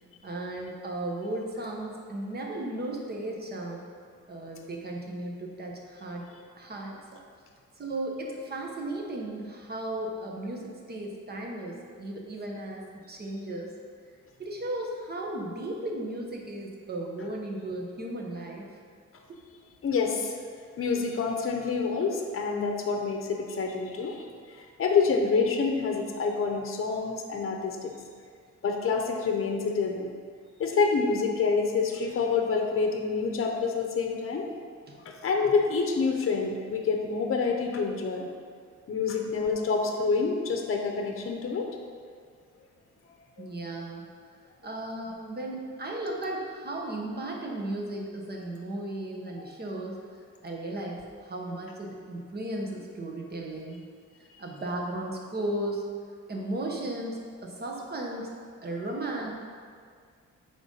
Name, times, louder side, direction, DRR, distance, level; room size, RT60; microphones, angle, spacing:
voice 1, 0.2-3.8 4.3-6.3 6.6-7.0 7.8-13.7 14.4-18.7 34.9-35.0 38.9-39.0 43.4-44.1 44.6-50.0 50.4-53.9 54.4-55.9 56.3-58.3 58.6-59.3, right 1 dB, 30° right, 0 dB, 1.2 m, -35 dB
voice 2, 19.8-20.3 20.8-28.0 28.6-30.1 30.6-34.5 35.0-38.3 38.9-41.7 43.4-43.5 49.4-49.5, left 4 dB, 45° left, 2 dB, 0.9 m, -27 dB
9.0 x 3.8 x 5.5 m, 2.1 s
wide cardioid pair, 155°, 30 cm